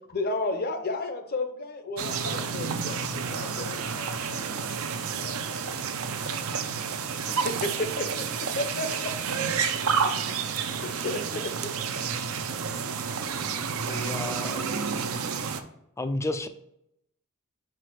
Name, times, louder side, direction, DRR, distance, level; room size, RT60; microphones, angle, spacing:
voice 1, 0.1-3.7 7.3-9.1 10.8-11.7, left 2 dB, 45° left, 7 dB, 0.7 m, -32 dB
sound 1, 2.0-15.6, right 6 dB, 65° right, 0.5 m, -30 dB
voice 2, 2.9-6.8, left 4 dB, 85° left, 5 dB, 0.9 m, -47 dB
voice 3, 13.9-14.7 16.0-16.5, left 2 dB, 15° left, 9 dB, 0.4 m, -32 dB
4.9 x 4.6 x 4.5 m, 0.78 s
head